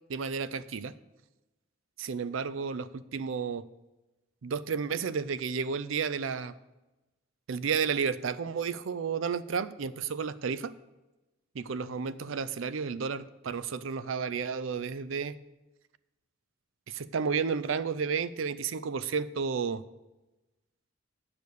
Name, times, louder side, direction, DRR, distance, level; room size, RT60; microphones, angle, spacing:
voice 1, 0.1-0.9 2.0-3.6 4.4-6.5 7.5-10.7 11.5-15.4 16.9-19.8, right 6 dB, 85° right, 15 dB, 0.5 m, -32 dB
8.6 x 6.8 x 6.4 m, 1.1 s
head